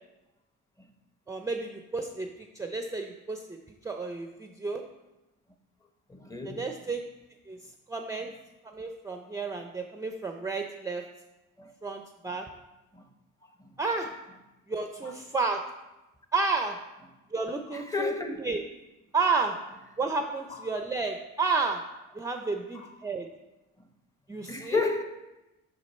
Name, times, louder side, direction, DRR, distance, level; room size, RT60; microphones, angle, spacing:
voice 1, 1.3-3.6 3.8-4.8 6.5-7.0 7.5-7.6 7.9-8.3 8.6-11.0 11.8-12.5 13.8-14.1 14.7-15.6 16.3-16.8 17.3-18.6 19.1-19.6 20.0-21.8 22.1-23.3 24.3-24.8, right 4 dB, 10° right, 0.5 m, -31 dB
voice 2, 6.1-6.7 11.6-11.7 12.9-13.0 13.6-13.7 15.0-15.1 17.7-18.4 20.5-20.6 22.7-22.9 24.4-25.0, left 3 dB, 10° left, 0.8 m, -32 dB
6.4 x 6.0 x 4.2 m
cardioid pair, 90°, 30 cm